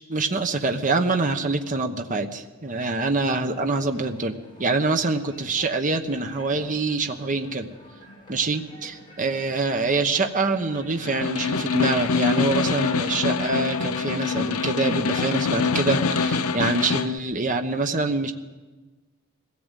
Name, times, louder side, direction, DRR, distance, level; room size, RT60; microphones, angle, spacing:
voice 1, 0.1-7.7 8.3-18.3, right 3 dB, 35° right, 5 dB, 1.0 m, -25 dB
sound 1, 3.3-16.6, equal, 20° left, 6.0 m, -45 dB
Snare drum, 11.0-17.2, left 5 dB, 90° left, 0.7 m, -25 dB
21.5 x 16.0 x 8.2 m, 1.2 s
head